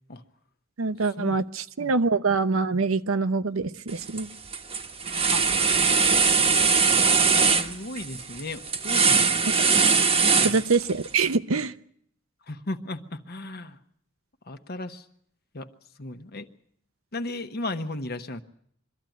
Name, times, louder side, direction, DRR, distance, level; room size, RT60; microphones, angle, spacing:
voice 1, 0.8-4.3 9.5-9.7 10.4-11.7, right 4 dB, 80° right, 12 dB, 0.8 m, -25 dB
sound 1, 3.9-4.2 4.5-11.1, right 5 dB, 30° right, 1.1 m, -21 dB
voice 2, 6.2-9.4 10.4-10.6 12.5-13.8 14.5-15.0 15.5-15.7 16.0-16.5 17.1-18.4, left 2 dB, 50° left, 8 dB, 1.1 m, -36 dB
23.5 x 13.5 x 9.2 m, 0.68 s
head